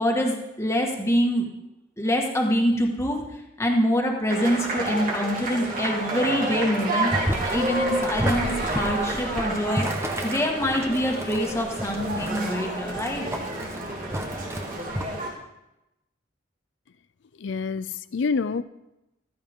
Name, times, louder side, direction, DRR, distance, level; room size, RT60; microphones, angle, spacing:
voice 1, 0.0-1.5 2.0-3.2 3.6-9.9 10.2-13.2, equal, 15° left, 0 dB, 1.8 m, -25 dB
sound 1, 4.3-15.3, right 2 dB, 50° right, 3.4 m, -30 dB
Boiling, 7.1-15.0, equal, 15° right, 1.1 m, -32 dB
voice 2, 17.4-18.6, left 5 dB, 75° left, 15 dB, 0.5 m, -27 dB
14.5 x 13.5 x 3.7 m, 0.91 s
head